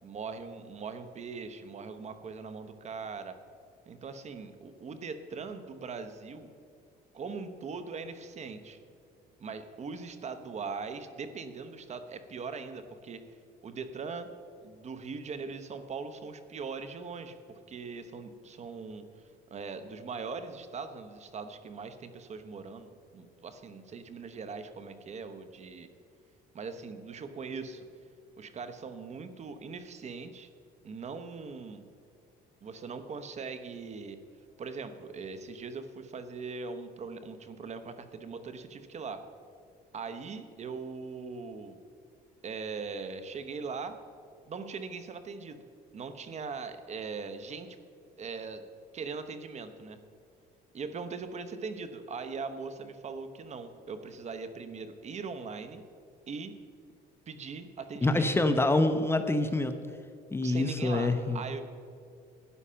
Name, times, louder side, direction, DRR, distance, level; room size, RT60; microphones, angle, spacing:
voice 1, 0.0-3.4 3.9-6.5 7.1-8.8 9.4-13.2 13.6-14.3 14.6-19.2 19.5-25.9 26.5-27.9 28.4-30.5 30.8-31.8 32.6-34.2 34.6-39.2 39.9-41.8 42.4-44.0 44.5-45.6 45.9-47.8 48.2-48.6 48.9-50.0 50.7-55.8 56.3-56.6 57.3-58.3 60.4-61.6, right 4 dB, 40° right, 10 dB, 1.0 m, -40 dB
voice 2, 58.0-59.7 60.3-61.4, left 2 dB, 15° left, 7 dB, 0.8 m, -26 dB
12.5 x 9.9 x 5.7 m, 2.3 s
cardioid pair, 110°, 17 cm